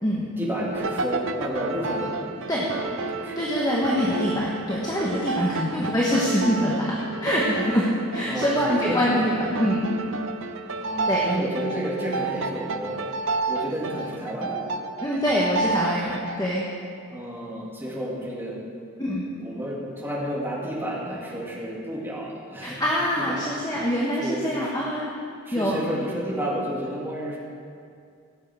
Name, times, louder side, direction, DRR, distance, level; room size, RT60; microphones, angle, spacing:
voice 1, 0.2-3.5 3.8-4.1 5.6-5.9 8.2-8.5 8.8-9.3 10.8-13.0 13.5-14.6 15.2-15.5 15.8-16.0 17.1-18.7 19.4-22.8 23.2-23.5 24.2-24.7 25.5-27.4, equal, 10° right, -5 dB, 2.2 m, -31 dB
sound 1, 0.7-16.4, right 3 dB, 60° right, 0.6 m, -31 dB
voice 2, 3.4-7.8 8.1-9.3 9.6-9.9 11.1-11.3 15.0-16.7 19.0-19.2 22.6-25.0 25.5-25.8, equal, 15° left, -5 dB, 1.2 m, -24 dB
17.0 x 7.4 x 4.9 m, 2.3 s
head